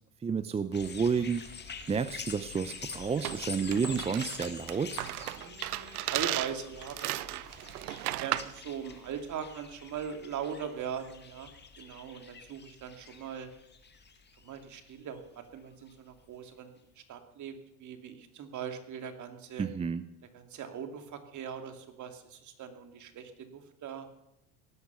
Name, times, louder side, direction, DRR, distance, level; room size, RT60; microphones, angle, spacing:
voice 1, 0.2-1.5 1.9-5.0 19.6-20.0, right 6 dB, 15° right, 13 dB, 0.6 m, -30 dB
sound 1, 0.7-15.2 15.9-16.0, left 5 dB, 25° left, 2.2 m, -46 dB
sound 2, 3.2-8.6, right 16 dB, 80° right, 0.8 m, -35 dB
voice 2, 5.3-7.4 8.2-11.5 11.8-13.5 14.4-19.7 20.3-24.1, right 7 dB, 40° right, 7 dB, 2.7 m, -40 dB
18.0 x 11.5 x 7.0 m, 0.83 s
hypercardioid pair, 95°, 44 cm